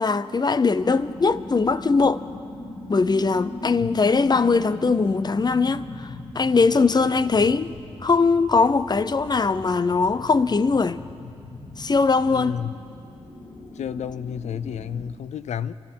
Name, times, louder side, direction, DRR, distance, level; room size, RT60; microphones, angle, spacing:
voice 1, 0.0-2.2 2.9-7.7 8.0-11.0 11.8-12.6, left 4 dB, 35° left, 0.7 m, -21 dB
sound 1, 0.7-15.1, left 2 dB, 55° left, 2.2 m, -39 dB
voice 2, 12.3-12.7 13.8-15.7, left 8 dB, 75° left, 0.5 m, -31 dB
27.0 x 14.0 x 3.8 m
cardioid pair, 50°, 12 cm